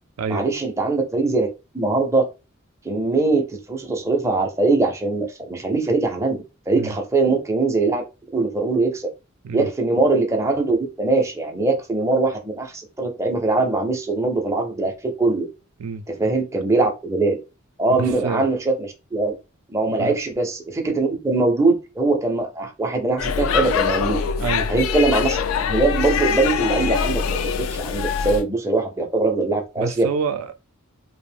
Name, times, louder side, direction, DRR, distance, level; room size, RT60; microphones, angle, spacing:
voice 1, 0.3-1.5 1.7-2.3 2.8-8.0 8.3-9.1 9.5-15.5 16.1-17.4 17.8-19.3 19.7-24.2 24.7-25.4 25.7-30.1, right 3 dB, 15° right, 0.5 m, -22 dB
voice 2, 18.0-18.4 19.9-20.2 24.4-24.7 29.8-30.5, right 5 dB, 85° right, 0.3 m, -27 dB
Speech / Shout / Subway metro underground, 23.2-28.4, left 6 dB, 70° left, 0.3 m, -23 dB
2.4 x 2.0 x 3.3 m
head